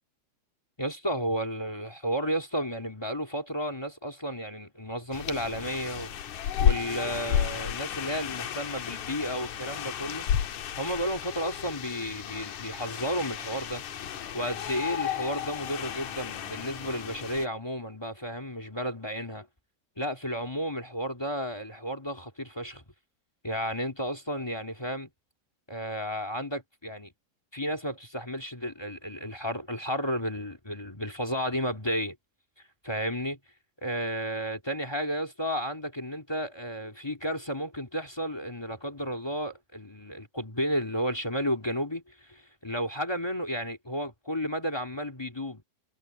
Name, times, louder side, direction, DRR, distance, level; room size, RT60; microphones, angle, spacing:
voice 1, 0.8-6.1 6.6-10.3 10.8-13.8 14.3-19.5 20.0-22.8 23.4-25.1 25.7-27.1 27.5-32.1 32.8-33.4 33.8-45.6, equal, 10° left, 1.1 m, -32 dB
sound 1, 5.1-17.5, left 9 dB, 60° left, 2.4 m, -32 dB
omnidirectional pair, 4.4 m